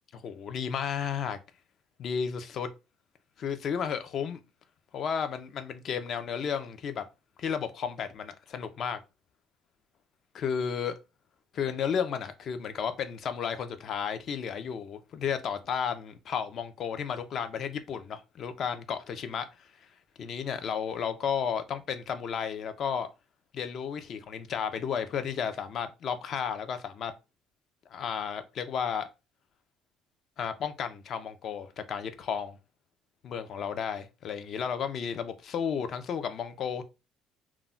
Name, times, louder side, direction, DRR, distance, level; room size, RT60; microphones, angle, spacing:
voice 1, 0.1-1.4 2.0-2.7 3.4-4.4 4.9-7.0 7.4-9.0 10.3-11.0 11.5-19.7 20.2-23.1 23.5-27.1 27.9-29.1 30.4-32.6 33.2-36.8, left 7 dB, 35° left, 0.3 m, -33 dB
2.2 x 2.0 x 3.7 m
cardioid pair, 180°, 0 cm